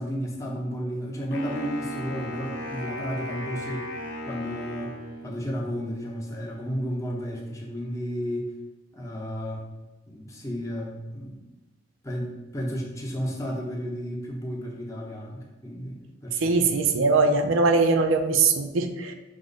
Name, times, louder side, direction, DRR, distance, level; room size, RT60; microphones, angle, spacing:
voice 1, 0.0-3.9 4.3-5.0 5.2-8.5 8.9-9.7 10.1-11.4 12.0-16.5, equal, 15° left, -2 dB, 0.7 m, -32 dB
Wind instrument woodwind instrument, 1.3-5.5, left 1 dB, 70° left, 0.8 m, -36 dB
voice 2, 16.4-19.1, right 3 dB, 85° right, 6 dB, 0.4 m, -21 dB
6.0 x 2.1 x 3.9 m, 1.1 s
head